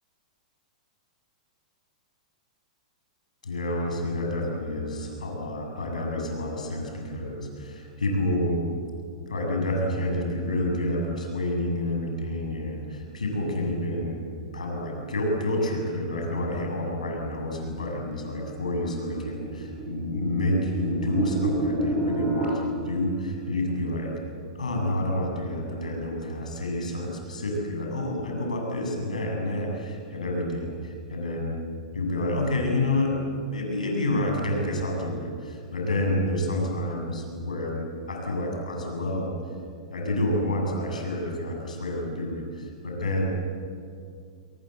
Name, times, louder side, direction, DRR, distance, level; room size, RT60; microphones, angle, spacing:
voice 1, 3.4-8.6 9.3-14.2 14.5-24.1 24.5-31.6 31.9-33.2 33.5-39.4 39.9-43.2, left 1 dB, 90° left, 1 dB, 7.6 m, -29 dB
sound 1, 17.8-22.5, right 2 dB, 25° right, 7.4 m, -30 dB
27.0 x 24.5 x 8.0 m, 2.3 s
hypercardioid pair, 110°, 4 cm